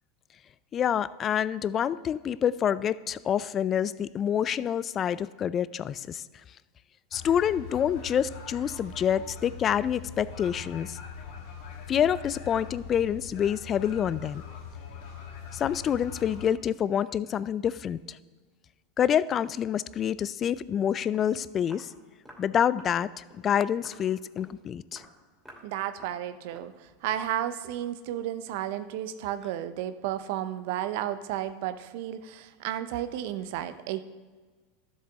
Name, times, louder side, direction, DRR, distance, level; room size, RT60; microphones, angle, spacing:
voice 1, 0.7-6.2 7.1-11.0 11.9-14.4 15.5-18.0 19.0-21.9 22.4-23.1 23.4-25.0, left 9 dB, 35° left, 18 dB, 0.3 m, -27 dB
sound 1, 7.1-16.5, left 5 dB, 65° left, 1.6 m, -42 dB
Walk footsteps, 21.1-21.3 21.7-21.9 22.2-22.5 22.8-23.0 23.3-23.5 23.8-24.0 24.4-24.6 24.9-25.1 25.4-25.7 26.0-26.2 26.5-26.7 27.1-27.3, equal, ahead, 2.7 m, -51 dB
voice 2, 25.6-34.0, right 11 dB, 65° right, 12 dB, 0.6 m, -33 dB
12.5 x 7.5 x 3.5 m, 1.4 s
hypercardioid pair, 100°, 0 cm